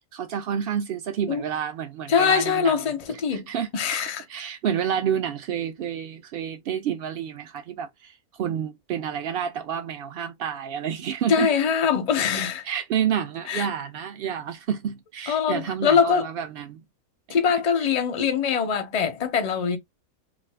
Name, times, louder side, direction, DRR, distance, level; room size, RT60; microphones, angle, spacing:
voice 1, 0.1-2.8 3.3-3.7 4.3-11.5 12.6-16.8 17.8-17.9, right 8 dB, 80° right, 0.5 m, -29 dB
voice 2, 2.1-4.2 11.3-12.6 13.5-13.7 15.3-16.3 17.3-19.8, left 6 dB, 50° left, 0.4 m, -23 dB
2.5 x 2.4 x 3.3 m
omnidirectional pair, 1.5 m